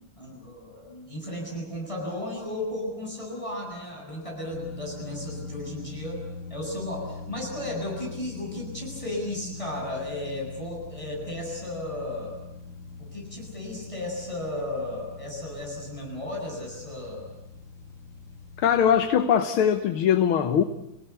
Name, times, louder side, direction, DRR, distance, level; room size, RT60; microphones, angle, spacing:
voice 1, 0.2-6.2 6.5-12.4 13.0-17.3, left 1 dB, 15° left, -1 dB, 7.9 m, -34 dB
sound 1, 4.5-19.1, left 3 dB, 35° left, 3.8 m, -42 dB
voice 2, 18.6-20.6, left 8 dB, 80° left, 9 dB, 1.9 m, -21 dB
30.0 x 18.0 x 8.3 m, 0.89 s
omnidirectional pair, 2.3 m